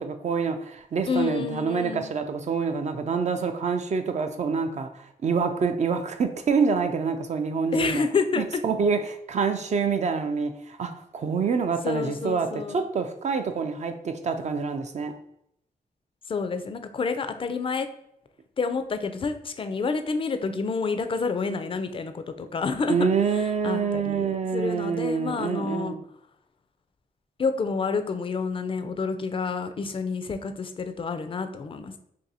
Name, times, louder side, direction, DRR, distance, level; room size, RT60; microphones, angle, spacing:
voice 1, 0.0-8.1 8.4-15.1 22.9-26.0, right 5 dB, 50° right, 0.4 m, -26 dB
voice 2, 1.1-2.1 7.7-8.6 11.8-12.8 16.3-17.9 18.6-25.9 27.4-32.0, left 4 dB, 35° left, 0.4 m, -29 dB
2.6 x 2.6 x 4.0 m
cardioid pair, 90°, 15 cm